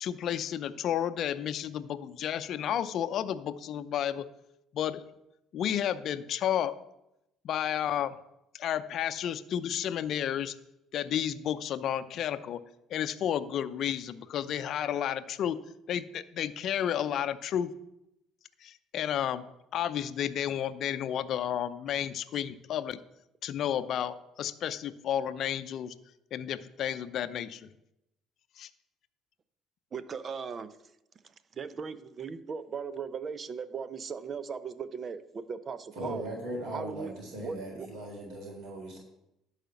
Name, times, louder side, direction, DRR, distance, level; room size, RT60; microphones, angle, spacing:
voice 1, 0.0-4.2 4.7-5.0 5.5-6.8 7.4-8.1 8.5-10.5 10.9-12.6 12.9-15.6 15.9-17.7 18.6-23.0 23.4-25.9 26.3-27.6 28.6-28.7, left 10 dB, 55° left, 11 dB, 0.6 m, -32 dB
voice 2, 29.9-30.8 31.5-36.3 36.7-37.1 37.4-37.9, right 6 dB, 40° right, 14 dB, 0.9 m, -38 dB
voice 3, 35.9-39.0, right 1 dB, 65° right, -1 dB, 3.7 m, -39 dB
11.5 x 5.0 x 7.6 m, 0.85 s
hypercardioid pair, 60°, 0 cm